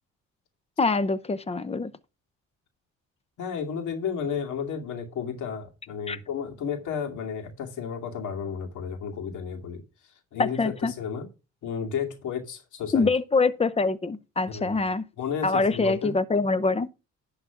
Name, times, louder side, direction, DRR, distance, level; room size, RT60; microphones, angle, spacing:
voice 1, 0.8-1.9 6.1-6.2 10.4-10.9 12.9-15.0 15.4-16.9, left 3 dB, 20° left, 0.7 m, -24 dB
voice 2, 3.4-9.8 10.3-11.3 11.6-13.1 14.5-14.8 15.2-16.1, left 7 dB, 75° left, 2.4 m, -32 dB
11.0 x 4.0 x 5.8 m
cardioid pair, 90°, 30 cm